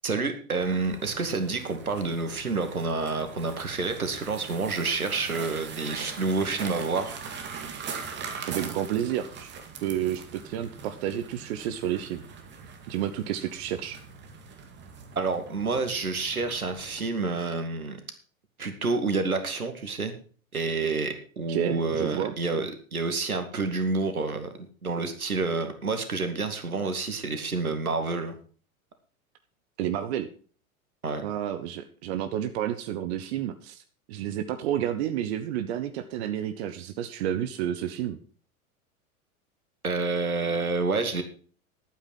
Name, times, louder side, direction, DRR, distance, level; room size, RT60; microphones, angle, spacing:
voice 1, 0.0-7.2 15.2-18.0 18.6-20.2 20.5-24.5 24.8-28.4 31.0-31.2 39.8-41.2, right 3 dB, 80° right, 8 dB, 2.1 m, -28 dB
sound 1, 0.6-17.1, right 6 dB, 25° right, 2.3 m, -42 dB
voice 2, 8.4-12.2 12.9-14.0 21.5-22.3 29.8-30.3 31.2-33.8 34.1-38.2, right 11 dB, 50° right, 10 dB, 1.2 m, -30 dB
11.5 x 9.0 x 5.5 m, 0.41 s
figure-of-eight pair, 95°, 42 cm